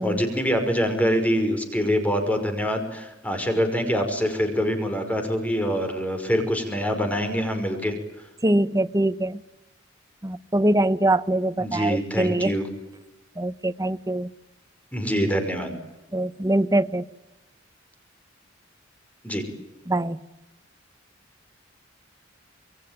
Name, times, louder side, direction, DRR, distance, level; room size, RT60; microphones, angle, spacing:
voice 1, 0.0-7.9 11.6-12.7 14.9-15.7 19.2-19.4, equal, 10° left, 5.5 m, -25 dB
voice 2, 8.4-9.4 10.2-12.5 13.4-14.3 16.1-17.1 19.9-20.2, right 1 dB, 20° right, 1.0 m, -23 dB
27.0 x 22.0 x 9.1 m
head